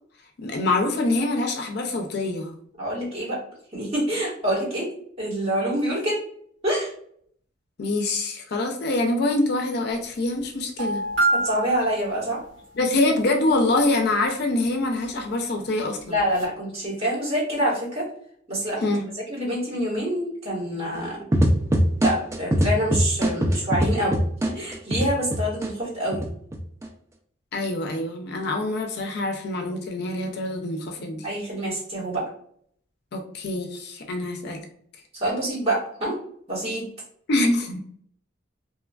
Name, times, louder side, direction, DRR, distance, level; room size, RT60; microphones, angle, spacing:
voice 1, 0.4-2.5 7.8-11.1 12.8-16.2 18.8-19.1 27.5-31.3 33.1-34.6 37.3-37.8, left 2 dB, 55° left, 3 dB, 0.4 m, -25 dB
voice 2, 2.8-3.4 3.7-4.9 5.2-6.2 6.6-6.9 11.3-12.4 16.1-18.1 18.5-18.8 19.3-21.2 22.0-24.2 24.5-26.2 31.2-32.2 35.2-36.2 36.5-36.8, equal, 30° right, -7 dB, 1.4 m, -26 dB
sound 1, 10.0-10.1 10.4-10.5 10.8-12.7 15.6-15.7 16.2-16.4, right 2 dB, 85° right, 1.1 m, -27 dB
sound 2, 21.3-25.7 26.1-26.9, equal, 15° right, 0.3 m, -21 dB
3.0 x 2.3 x 2.2 m, 0.62 s
head